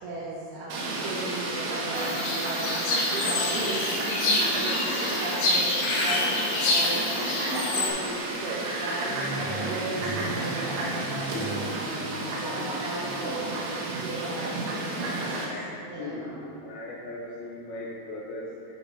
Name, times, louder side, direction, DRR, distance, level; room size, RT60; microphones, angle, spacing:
voice 1, 0.0-11.8 12.3-15.4 15.9-16.4, right 2 dB, 75° right, -8 dB, 2.6 m, -36 dB
Fowl, 0.7-15.5, right 2 dB, 90° right, 3.4 m, -31 dB
sound 1, 1.9-7.9, left 2 dB, 75° left, 2.6 m, -27 dB
sound 2, 9.1-14.0, right 2 dB, 55° right, 1.7 m, -38 dB
voice 2, 16.6-18.7, left 2 dB, 90° left, -5 dB, 2.2 m, -38 dB
8.5 x 4.6 x 4.0 m, 2.6 s
omnidirectional pair, 5.2 m